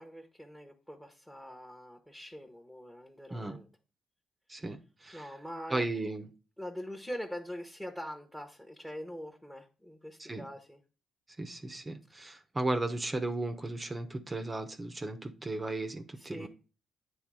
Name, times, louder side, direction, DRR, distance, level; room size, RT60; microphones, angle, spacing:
voice 1, 0.0-3.7 5.1-5.9 6.6-10.8 16.2-16.5, equal, 5° left, 1.1 m, -43 dB
voice 2, 4.5-5.3 5.7-6.3 10.3-10.4 11.4-16.5, right 2 dB, 20° right, 0.9 m, -35 dB
9.1 x 3.3 x 4.8 m
cardioid pair, 90°, 0 cm